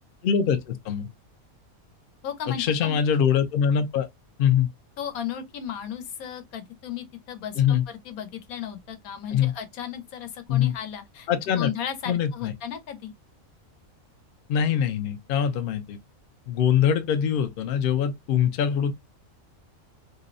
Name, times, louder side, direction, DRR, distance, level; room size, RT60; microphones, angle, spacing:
voice 1, 0.2-1.1 2.6-4.1 4.4-4.7 7.6-7.8 9.3-9.5 10.5-10.7 11.3-11.7 12.1-12.5 14.5-16.0 16.5-18.9, left 8 dB, 70° left, 0.5 m, -23 dB
voice 2, 2.2-3.0 5.0-11.3 11.5-13.1, left 9 dB, 85° left, 1.1 m, -35 dB
2.6 x 2.0 x 2.4 m
omnidirectional pair, 1.5 m